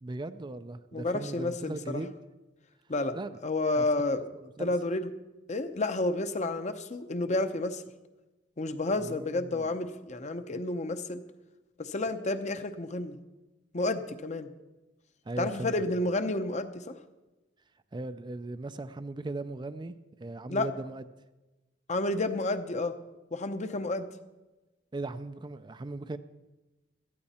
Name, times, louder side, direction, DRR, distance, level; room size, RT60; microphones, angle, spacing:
voice 1, 0.0-2.1 3.2-3.4 3.7-3.8 4.4-4.7 9.0-9.8 15.3-15.7 17.9-21.0 24.9-26.2, right 2 dB, 25° right, 0.4 m, -38 dB
voice 2, 0.9-2.0 2.9-3.2 3.4-4.2 4.6-5.1 5.5-7.8 8.6-11.2 11.8-13.2 13.7-14.5 15.4-17.0 20.5-20.7 21.9-23.0 23.3-24.1, left 2 dB, 40° left, 0.8 m, -30 dB
17.0 x 13.0 x 4.3 m
head